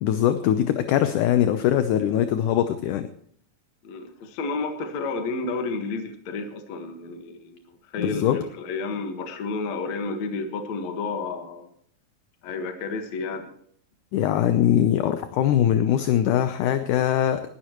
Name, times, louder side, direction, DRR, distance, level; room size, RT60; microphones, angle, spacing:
voice 1, 0.0-3.1 8.0-8.4 14.1-17.4, left 10 dB, 75° left, 9 dB, 2.1 m, -22 dB
voice 2, 3.8-7.6 7.9-11.7 12.4-13.5, left 3 dB, 55° left, 6 dB, 2.6 m, -31 dB
20.0 x 13.0 x 3.1 m, 0.62 s
omnidirectional pair, 4.1 m